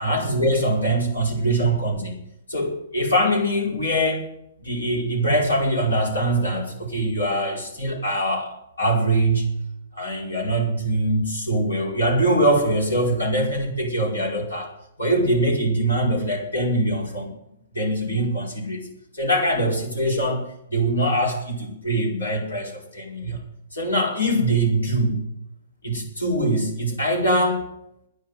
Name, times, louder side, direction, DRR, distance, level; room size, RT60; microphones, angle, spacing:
voice 1, 0.0-2.1 2.5-4.3 4.6-9.6 9.9-14.7 15.0-17.3 17.7-18.9 19.1-20.4 20.7-23.4 23.7-25.2 25.8-27.7, right 1 dB, 85° left, 0 dB, 5.4 m, -23 dB
10.5 x 10.0 x 9.2 m, 0.78 s
hypercardioid pair, 120°, 0 cm